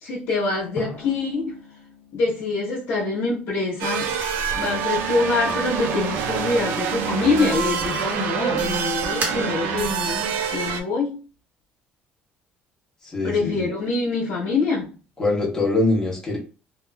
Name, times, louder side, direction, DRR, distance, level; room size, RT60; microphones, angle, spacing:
voice 1, 0.0-1.6 2.1-4.1 4.6-11.2 13.2-14.9, left 3 dB, 75° left, 0.9 m, -25 dB
Drum, 0.8-3.7, left 3 dB, 40° left, 0.6 m, -41 dB
sound 1, 3.8-10.8, right 7 dB, 85° right, 0.4 m, -26 dB
sound 2, 4.7-10.0, right 2 dB, 45° right, 0.9 m, -39 dB
voice 2, 13.0-13.7 15.2-16.4, left 2 dB, 15° left, 1.0 m, -23 dB
2.9 x 2.0 x 2.2 m
cardioid pair, 125°, 4 cm